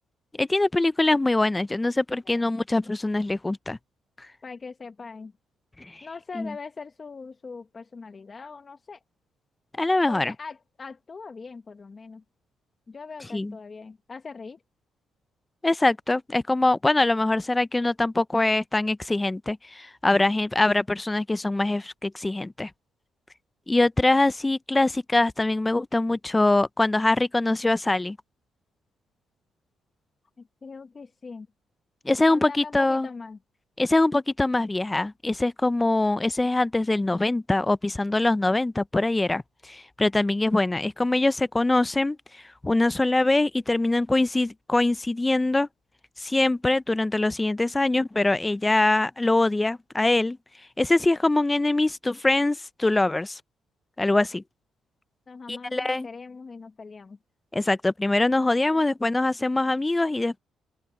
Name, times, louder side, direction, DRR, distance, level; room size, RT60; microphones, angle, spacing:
voice 1, 0.4-3.8 5.8-6.1 6.3-6.5 9.8-10.3 13.3-13.5 15.6-22.7 23.7-28.2 32.0-33.1 33.8-42.2 42.6-45.7 46.2-50.4 50.8-53.4 54.0-54.4 55.5-56.1 57.5-60.4, left 2 dB, 15° left, 0.6 m, -23 dB
voice 2, 4.4-5.3 6.0-9.0 10.1-12.2 12.9-14.6 30.4-31.5 32.3-33.4 36.9-37.3 55.3-57.2 58.7-58.8, left 4 dB, 35° left, 1.4 m, -41 dB
open air
cardioid pair, 90°, 0 cm